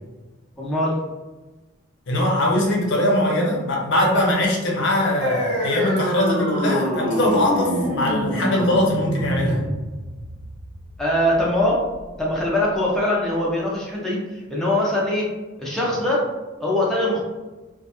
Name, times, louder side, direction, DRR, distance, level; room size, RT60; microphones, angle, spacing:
voice 1, 0.6-1.0 11.0-11.9 12.2-15.3 15.6-16.3 16.6-17.2, left 1 dB, ahead, -5 dB, 0.4 m, -22 dB
voice 2, 2.1-9.6, left 1 dB, 60° left, -1 dB, 0.6 m, -21 dB
sound 1, 5.2-12.2, equal, 85° right, 0.9 m, -26 dB
2.4 x 2.3 x 2.7 m, 1.2 s
head